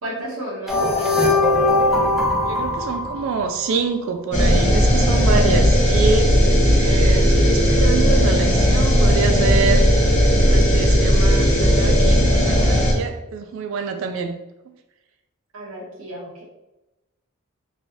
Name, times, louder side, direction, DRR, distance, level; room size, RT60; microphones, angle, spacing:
voice 1, 0.0-1.2 15.5-16.4, right 1 dB, 90° right, -3 dB, 1.1 m, -32 dB
sound 1, 0.7-3.7, left 2 dB, ahead, 0.5 m, -20 dB
voice 2, 2.4-6.4 6.7-9.9 10.4-14.4, right 5 dB, 70° right, 7 dB, 0.3 m, -26 dB
sound 2, 4.3-12.9, equal, 35° left, 0.8 m, -16 dB
3.2 x 2.8 x 2.6 m, 0.95 s
head